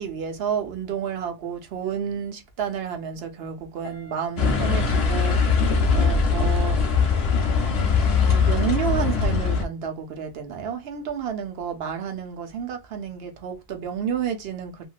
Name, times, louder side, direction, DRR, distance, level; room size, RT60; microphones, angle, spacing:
voice 1, 0.0-5.4 5.9-6.8 8.2-14.9, right 8 dB, 70° right, 0.9 m, -30 dB
Piano, 3.8-6.9 7.2-7.6, right 1 dB, 40° right, 1.4 m, -49 dB
sound 1, 4.4-9.6, left 5 dB, 70° left, 1.0 m, -21 dB
2.8 x 2.7 x 2.3 m
omnidirectional pair, 1.1 m